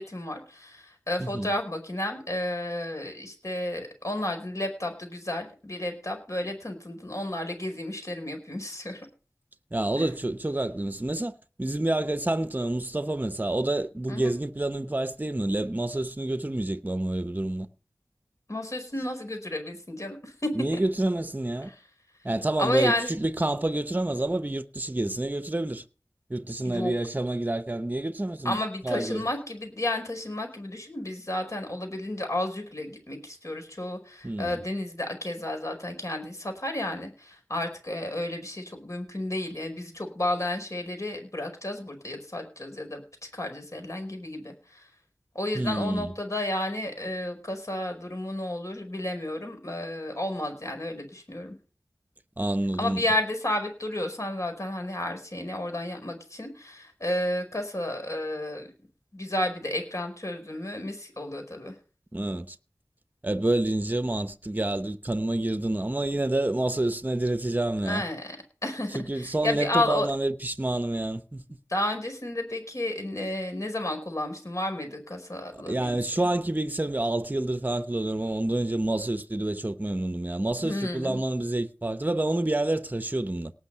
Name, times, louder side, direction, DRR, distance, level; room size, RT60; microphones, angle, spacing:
voice 1, 0.0-9.0 10.0-10.1 14.1-14.3 18.5-20.8 21.6-21.7 22.6-23.1 26.6-26.9 28.4-43.0 43.3-44.8 45.3-51.6 52.8-58.7 59.1-61.7 67.8-68.4 68.6-70.1 71.7-76.0 80.6-81.2, left 1 dB, 55° left, 5.0 m, -32 dB
voice 2, 1.2-1.6 9.7-17.7 20.5-21.7 22.2-25.8 26.3-28.6 28.8-29.3 34.2-34.6 45.5-46.2 52.4-53.1 62.1-62.6 63.2-68.0 68.9-71.4 75.5-83.5, right 1 dB, 30° right, 0.8 m, -28 dB
18.5 x 6.4 x 5.6 m
wide cardioid pair, 55°, 6 cm